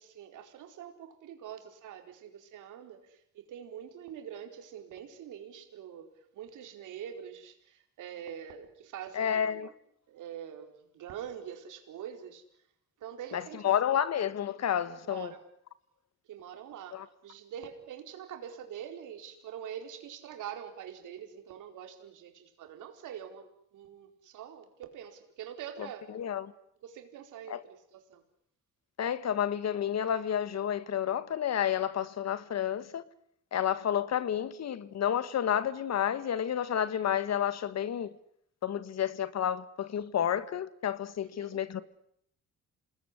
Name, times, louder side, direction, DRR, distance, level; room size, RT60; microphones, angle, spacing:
voice 1, 0.0-9.7 10.1-12.4 13.0-14.0 15.0-15.4 16.3-26.1 26.8-28.2 41.3-41.6, right 9 dB, 85° right, 4.6 m, -45 dB
voice 2, 9.1-9.7 13.3-15.3 16.9-17.0 26.1-26.5 27.5-27.6 29.0-33.0 33.5-38.1 38.6-41.8, left 9 dB, 60° left, 1.7 m, -30 dB
28.0 x 20.0 x 9.9 m
cardioid pair, 90°, 30 cm